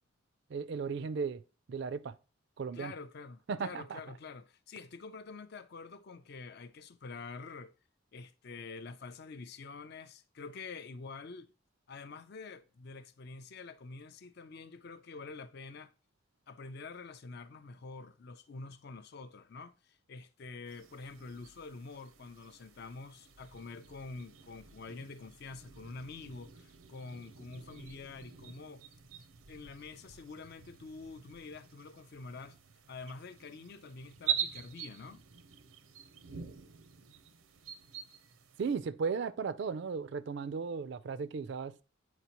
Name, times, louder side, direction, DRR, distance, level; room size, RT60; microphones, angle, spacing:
voice 1, 0.5-1.4 1.7-2.1 2.6-2.9 3.5-4.0 38.6-41.8, right 5 dB, 55° right, 0.4 m, -36 dB
voice 2, 2.7-7.7 8.1-11.5 11.9-15.9 16.5-28.8 29.5-32.6 32.9-35.2, left 4 dB, 50° left, 0.4 m, -47 dB
sound 1, 20.7-38.8, right 9 dB, 90° right, 0.7 m, -45 dB
8.1 x 4.9 x 2.9 m
head